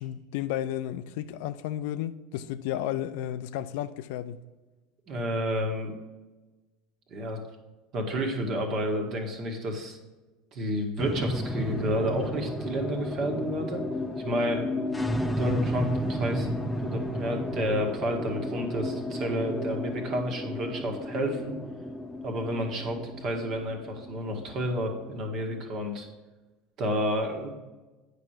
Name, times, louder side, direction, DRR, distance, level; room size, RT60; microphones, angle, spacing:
voice 1, 0.0-4.4, left 12 dB, 65° left, 0.4 m, -33 dB
voice 2, 5.1-5.9 7.1-7.4 7.9-10.0 10.5-13.9 14.2-14.7 15.4-16.5 16.8-21.6 22.2-26.1 26.8-27.5, equal, 45° right, 1.6 m, -30 dB
sound 1, 11.0-25.6, left 1 dB, 10° left, 0.6 m, -33 dB
9.1 x 5.1 x 4.4 m
figure-of-eight pair, 75°, 0 cm